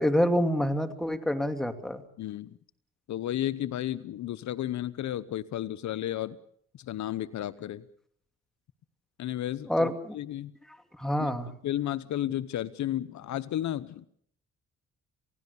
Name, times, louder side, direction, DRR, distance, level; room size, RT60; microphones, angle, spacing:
voice 1, 0.0-2.0 9.7-10.2 11.0-11.5, equal, ahead, 7 dB, 2.6 m, -27 dB
voice 2, 2.2-2.6 3.1-6.4 6.8-7.8 9.2-9.9 10.1-10.5 11.2-11.3 11.6-14.1, left 12 dB, 70° left, 15 dB, 0.9 m, -33 dB
28.5 x 17.0 x 7.0 m, 0.65 s
cardioid pair, 90°, 30 cm